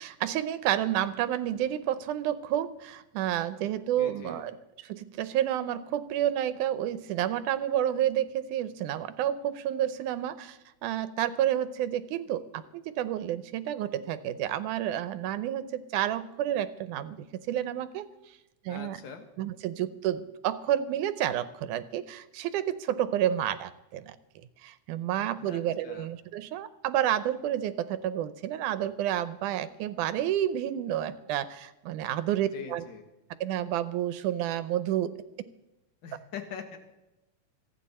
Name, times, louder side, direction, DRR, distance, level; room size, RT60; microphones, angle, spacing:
voice 1, 0.0-4.6 4.8-18.1 18.7-19.0 19.4-24.2 24.6-32.8 33.4-35.1, right 11 dB, 85° right, 13 dB, 2.2 m, -30 dB
voice 2, 4.0-4.5 18.7-19.3 25.4-26.1 32.5-33.0 36.0-36.8, left 6 dB, 45° left, 5 dB, 1.9 m, -42 dB
26.0 x 9.1 x 4.2 m, 0.96 s
omnidirectional pair, 3.5 m